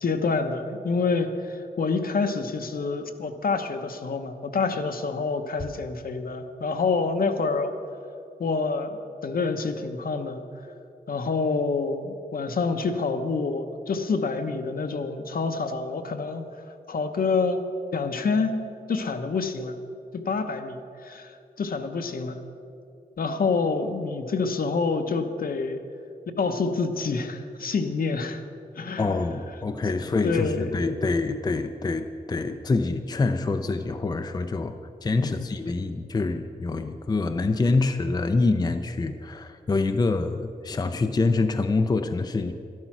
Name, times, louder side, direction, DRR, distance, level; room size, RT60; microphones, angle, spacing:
voice 1, 0.0-7.7 8.4-10.4 11.1-16.4 16.9-17.6 17.9-18.6 18.9-19.8 20.1-22.4 23.2-25.8 26.4-28.4 28.8-29.1 30.2-30.8 35.2-35.4, left 4 dB, 65° left, 7 dB, 1.0 m, -27 dB
voice 2, 29.0-34.8 35.0-42.5, left 3 dB, 25° left, 7 dB, 0.5 m, -26 dB
12.0 x 12.0 x 6.0 m, 2.6 s
wide cardioid pair, 135°, 16 cm